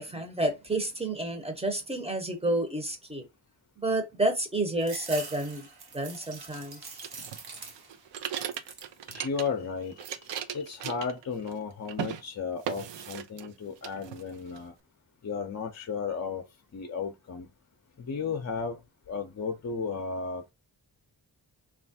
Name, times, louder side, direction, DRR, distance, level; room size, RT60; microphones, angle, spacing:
voice 1, 0.0-3.2 3.8-5.7 5.9-6.8, right 1 dB, 15° right, 0.8 m, -30 dB
sound 1, 4.8-8.1 8.4-9.0 9.5-10.2, right 4 dB, 55° right, 0.9 m, -44 dB
sound 2, 7.0-9.7 9.9-11.6 11.9-12.2 12.6-13.5 13.8-14.6, right 9 dB, 75° right, 0.5 m, -37 dB
voice 2, 9.1-10.2 10.5-14.7 15.2-16.4 16.7-17.5 18.0-18.8 19.1-20.5, left 5 dB, 40° left, 0.5 m, -34 dB
3.2 x 2.4 x 2.6 m
wide cardioid pair, 95°, 44 cm